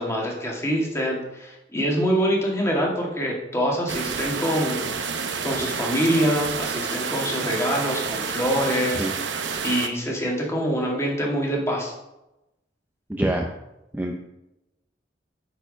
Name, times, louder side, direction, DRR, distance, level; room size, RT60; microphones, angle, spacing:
voice 1, 0.0-4.8 5.4-9.1 9.6-11.9, equal, 15° left, -2 dB, 1.9 m, -25 dB
sound 1, 3.9-9.9, right 5 dB, 90° right, 0.8 m, -29 dB
voice 2, 13.1-13.5 13.9-14.1, right 1 dB, 10° right, 0 dB, 0.6 m, -25 dB
9.1 x 4.7 x 5.0 m, 0.93 s
head